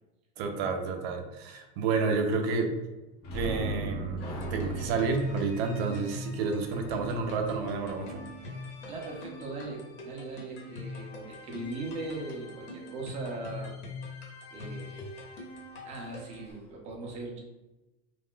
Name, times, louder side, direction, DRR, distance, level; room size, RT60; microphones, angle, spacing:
voice 1, 0.4-2.7 3.3-8.2, right 4 dB, 65° right, 3 dB, 0.6 m, -30 dB
sound 1, 3.2-8.6 15.9-16.1 16.5-16.6, right 2 dB, 30° left, 0.6 m, -38 dB
sound 2, 4.2-16.5, left 2 dB, 80° left, 1.0 m, -44 dB
voice 2, 8.8-13.7 14.5-15.1 15.8-17.4, right 2 dB, 20° right, -1 dB, 0.6 m, -39 dB
2.4 x 2.1 x 3.6 m, 1.0 s
supercardioid pair, 145°, 32 cm